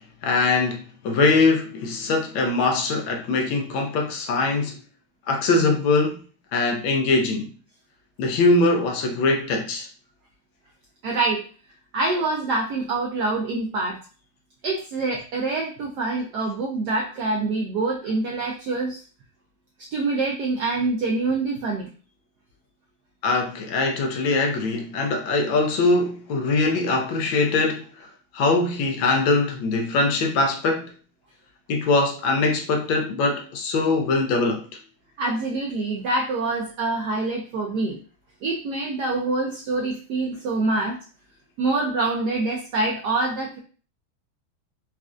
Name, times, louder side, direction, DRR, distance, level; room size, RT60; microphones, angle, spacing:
voice 1, 0.2-4.8 5.3-6.2 6.5-7.5 8.2-9.9 23.2-28.1 28.3-30.9 31.7-34.6, left 3 dB, 75° left, 1.3 m, -22 dB
voice 2, 11.0-11.4 11.9-14.0 14.6-19.0 19.8-21.9 35.2-38.0 38.4-41.0 41.6-43.6, right 3 dB, 90° right, 0.9 m, -25 dB
4.1 x 2.4 x 2.4 m
omnidirectional pair, 2.3 m